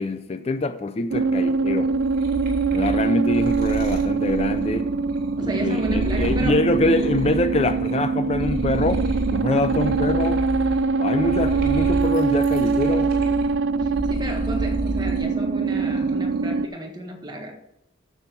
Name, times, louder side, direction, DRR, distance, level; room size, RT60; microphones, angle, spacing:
voice 1, 0.0-1.9 2.7-4.9 5.4-9.0 9.3-10.4 11.0-13.1, left 2 dB, 30° left, 0.4 m, -24 dB
sound 1, 1.1-16.7, right 4 dB, 80° right, 0.5 m, -23 dB
sound 2, 1.7-7.9 8.2-15.3 15.7-16.3, equal, 50° right, 2.7 m, -31 dB
voice 2, 5.4-6.6 13.8-17.6, equal, 20° right, 1.5 m, -34 dB
9.6 x 7.0 x 5.9 m
head